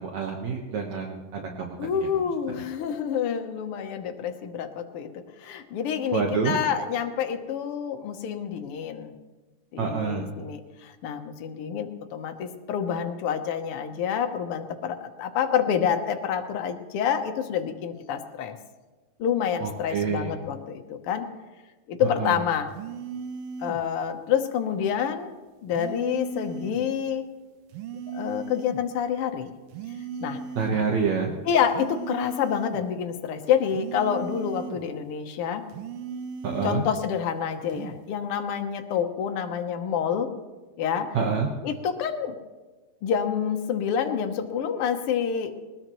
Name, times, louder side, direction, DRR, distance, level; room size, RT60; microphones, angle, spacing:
voice 1, 0.0-2.3 6.1-6.6 9.8-10.3 19.6-20.4 22.0-22.4 30.6-31.4 36.4-36.8 41.1-41.5, right 5 dB, 60° right, 1 dB, 2.2 m, -28 dB
voice 2, 1.8-9.2 9.7-18.5 19.2-21.3 21.9-22.7 23.6-25.3 25.6-27.2 28.1-29.5 30.2-30.4 31.4-35.6 36.6-40.3 40.8-41.2 41.6-42.3 43.0-45.5, left 8 dB, 80° left, 6 dB, 1.2 m, -28 dB
sound 1, 22.7-23.9 25.7-26.9 27.7-28.9 29.7-30.9 31.7-32.9 33.7-34.9 35.7-36.9 37.7-38.0, right 5 dB, 90° right, 2.5 m, -37 dB
20.5 x 20.0 x 3.1 m, 1.2 s
omnidirectional pair, 4.0 m